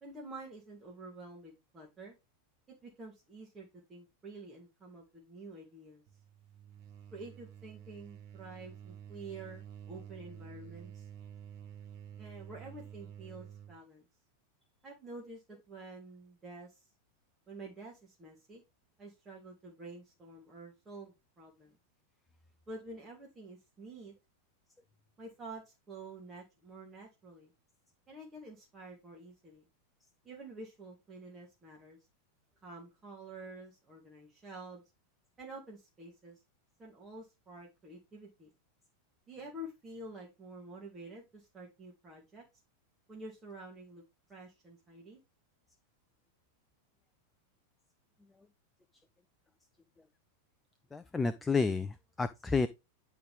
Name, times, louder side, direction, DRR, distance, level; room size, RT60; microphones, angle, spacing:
voice 1, 0.0-2.2 2.8-6.0 7.1-11.1 12.2-14.0 14.8-16.8 17.5-18.6 19.0-21.7 22.7-24.1 25.2-27.5 28.1-29.6 30.2-32.0 32.6-34.8 35.4-36.4 36.8-38.5 39.3-42.4 43.1-44.0 44.3-45.2, right 2 dB, 15° right, 2.3 m, -49 dB
sound 1, 6.1-13.8, right 9 dB, 45° right, 1.3 m, -50 dB
voice 2, 50.9-52.7, left 4 dB, 10° left, 0.4 m, -30 dB
10.0 x 3.9 x 3.6 m
figure-of-eight pair, 90°, 0 cm